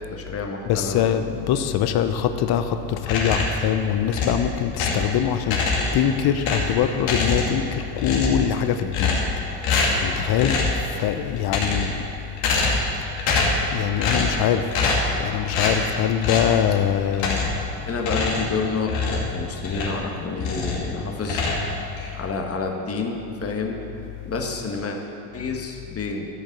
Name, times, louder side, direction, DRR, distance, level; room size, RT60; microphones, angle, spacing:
voice 1, 0.1-1.0 17.9-21.4 22.1-23.8 24.2-25.0 25.3-26.3, left 4 dB, 30° left, 2 dB, 1.5 m, -29 dB
voice 2, 0.7-5.6 5.9-9.2 10.0-10.6 10.9-11.9 13.7-14.7 15.2-17.4, left 9 dB, 55° left, 9 dB, 0.7 m, -23 dB
sound 1, 3.0-3.6 4.1-5.1 5.4-6.1 6.4-7.7 8.0-8.5 8.9-9.4 9.6-10.1 10.4-10.8 11.4-12.0 12.4-12.9 13.2-13.6 14.0-14.4 14.7-15.1 15.5-15.8 16.2-16.5 17.1-17.6 18.0-20.0 20.4-20.9 21.2-22.1, left 3 dB, 70° left, 2.4 m, -24 dB
13.5 x 5.3 x 7.3 m, 2.8 s
supercardioid pair, 90°, 47 cm